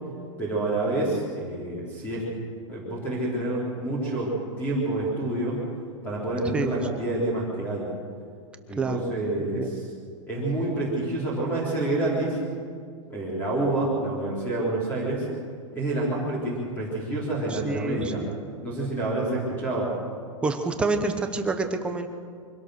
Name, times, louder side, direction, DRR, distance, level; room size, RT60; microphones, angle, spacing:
voice 1, 0.4-2.2 2.7-5.6 6.0-7.8 8.7-9.7 10.3-12.4 13.1-15.3 15.8-18.2 18.6-19.9, right 2 dB, 10° left, -6 dB, 3.7 m, -28 dB
voice 2, 6.4-7.0 8.8-9.1 9.4-9.7 17.5-18.3 20.4-22.1, right 3 dB, 5° right, 6 dB, 0.9 m, -28 dB
24.0 x 17.0 x 6.4 m, 2.2 s
supercardioid pair, 175°, 16 cm